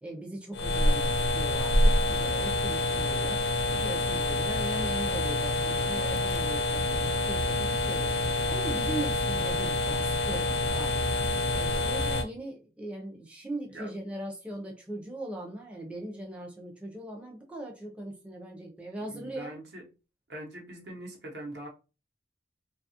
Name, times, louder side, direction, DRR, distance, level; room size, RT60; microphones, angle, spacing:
voice 1, 0.0-8.1 8.5-10.9 11.5-19.5, right 1 dB, 5° right, 0.4 m, -39 dB
sound 1, 0.5-12.2, left 2 dB, 65° left, 0.4 m, -27 dB
voice 2, 19.1-19.8 20.3-21.7, right 1 dB, 65° right, 0.8 m, -42 dB
2.7 x 2.3 x 2.7 m
head